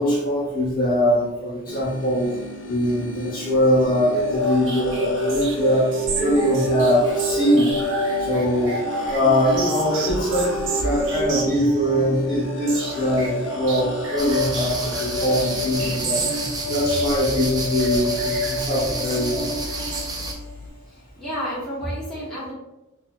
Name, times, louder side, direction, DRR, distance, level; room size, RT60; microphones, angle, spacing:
voice 1, 0.0-2.3 2.6-5.9 6.2-7.7 8.2-8.7 9.1-10.5 10.8-16.3 16.7-19.5, equal, 40° left, -5 dB, 1.1 m, -22 dB
sound 1, 1.7-20.7, left 1 dB, 70° left, 0.5 m, -38 dB
sound 2, 4.2-20.6, equal, 70° right, 0.7 m, -27 dB
sound 3, 14.2-20.3, right 2 dB, 20° right, 0.4 m, -31 dB
voice 2, 20.9-22.5, equal, 5° left, -10 dB, 0.9 m, -30 dB
4.2 x 2.6 x 2.2 m, 0.94 s
head